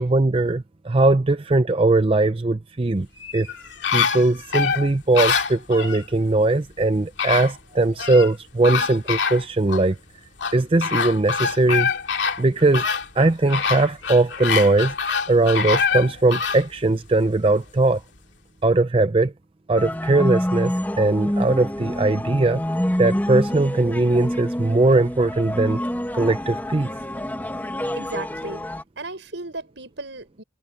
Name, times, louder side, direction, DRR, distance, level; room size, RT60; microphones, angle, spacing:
voice 1, 0.0-3.1 3.3-3.5 3.9-10.0 10.5-11.9 12.4-12.8 13.2-14.9 15.3-18.0 18.6-19.3 19.7-22.6 23.0-25.8 26.1-27.0, right 2 dB, 30° right, 0.5 m, -20 dB
sound 1, 3.2-6.0 6.8-6.9 7.2-8.3 8.6-9.8 10.4-16.6 17.1-17.2, left 6 dB, 70° left, 2.7 m, -25 dB
sound 2, 19.8-28.8, equal, 10° left, 1.9 m, -27 dB
voice 2, 27.9-28.6 29.0-30.4, right 2 dB, 75° right, 6.6 m, -35 dB
head